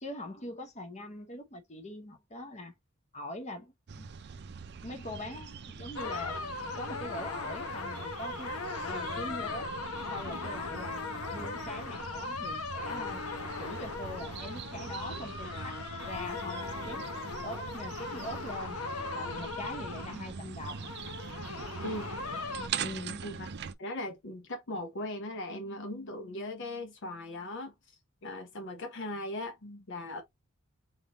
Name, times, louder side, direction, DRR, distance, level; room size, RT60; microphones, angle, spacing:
voice 1, 0.0-2.7 3.1-4.1 4.8-6.4 6.7-8.5 8.9-9.7 10.1-11.0 11.3-13.2 13.6-15.8 16.0-17.1 17.4-18.8 19.1-21.0 22.7-23.2, left 1 dB, 35° left, 1.1 m, -42 dB
sound 1, 3.9-23.7, right 6 dB, 55° right, 0.5 m, -43 dB
sound 2, 6.0-22.7, left 3 dB, 85° left, 1.1 m, -39 dB
voice 2, 21.8-22.1 23.2-23.5 23.8-27.7 28.2-30.2, left 1 dB, 60° left, 0.8 m, -38 dB
4.0 x 3.6 x 2.9 m
head